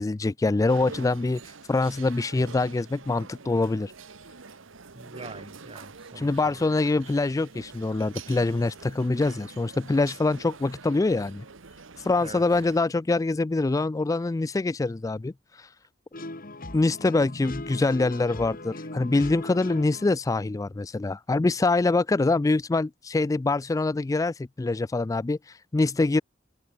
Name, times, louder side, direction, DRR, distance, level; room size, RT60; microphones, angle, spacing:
voice 1, 0.0-3.9 6.2-11.4 12.0-15.7 16.7-26.2, left 3 dB, 15° left, 0.3 m, -25 dB
sound 1, 0.7-12.8, right 4 dB, 80° right, 1.3 m, -45 dB
voice 2, 4.9-6.7 12.2-12.6, right 2 dB, 30° right, 2.5 m, -44 dB
sound 2, 16.1-20.1, left 2 dB, 50° left, 3.7 m, -39 dB
head